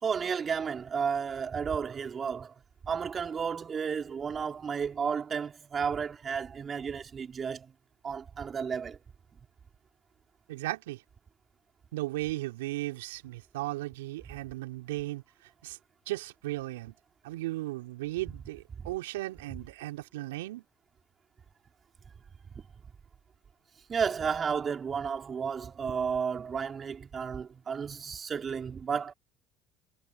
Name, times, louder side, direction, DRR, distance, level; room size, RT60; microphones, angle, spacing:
voice 1, 0.0-2.5 2.8-7.7 8.0-9.0 18.8-18.9 23.9-29.1, right 6 dB, 35° right, 3.3 m, -32 dB
voice 2, 10.5-11.0 11.9-15.2 15.6-15.8 16.1-16.9 17.2-20.6, right 18 dB, 80° right, 2.9 m, -36 dB
hypercardioid pair, 60°, 0 cm